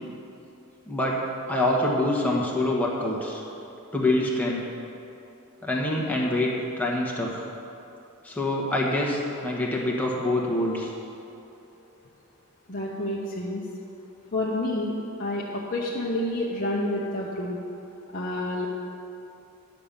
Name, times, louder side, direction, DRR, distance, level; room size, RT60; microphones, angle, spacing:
voice 1, 0.9-1.2 1.5-3.4 3.9-4.6 5.6-7.3 8.2-10.9, left 1 dB, 5° left, -3 dB, 1.2 m, -25 dB
voice 2, 12.7-13.6 14.3-14.9 15.2-17.6 18.1-18.7, left 1 dB, 40° left, -5 dB, 0.8 m, -29 dB
10.5 x 5.3 x 7.2 m, 2.8 s
head